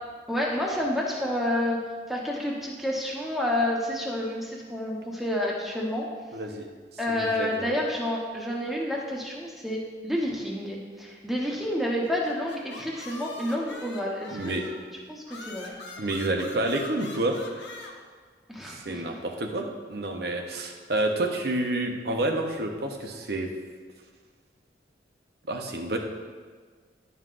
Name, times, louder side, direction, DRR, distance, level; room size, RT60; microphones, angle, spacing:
voice 1, 0.3-1.8 2.1-6.1 7.0-14.6 15.1-15.7 18.5-19.2, left 1 dB, ahead, -3 dB, 0.9 m, -29 dB
voice 2, 6.3-6.7 7.1-7.7 14.3-14.6 16.0-17.4 18.7-23.5 25.5-26.0, right 2 dB, 60° right, 3 dB, 0.8 m, -29 dB
sound 1, 12.0-14.9 15.3-17.9, left 2 dB, 75° left, 1.0 m, -43 dB
11.0 x 5.6 x 2.5 m, 1.5 s
head